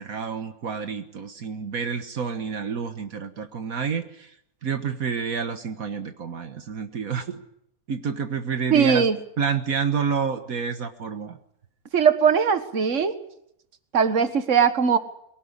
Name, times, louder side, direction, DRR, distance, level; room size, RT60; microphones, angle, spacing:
voice 1, 0.0-4.3 4.6-7.4 7.9-9.1 9.4-11.4, right 6 dB, 75° right, 8 dB, 1.8 m, -29 dB
voice 2, 8.7-9.2 11.9-13.1 13.9-15.0, right 6 dB, 60° right, 10 dB, 1.9 m, -20 dB
23.5 x 17.5 x 9.8 m, 0.75 s
omnidirectional pair, 1.5 m